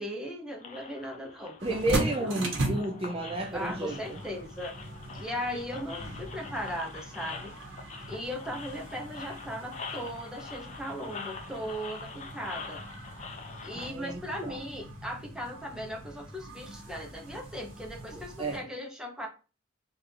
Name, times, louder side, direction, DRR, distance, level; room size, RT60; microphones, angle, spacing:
voice 1, 0.0-2.3 3.5-4.7 5.1-7.5 8.1-12.8 13.6-19.3, equal, 5° right, 0.9 m, -38 dB
sound 1, 0.6-13.9, left 5 dB, 35° left, 0.6 m, -45 dB
voice 2, 1.6-4.2 13.7-14.6 18.1-18.6, right 2 dB, 30° right, 0.5 m, -32 dB
sound 2, 1.6-18.6, right 1 dB, 85° right, 1.3 m, -39 dB
sound 3, 1.9-10.0, left 1 dB, 20° left, 2.0 m, -54 dB
3.6 x 2.6 x 4.4 m
head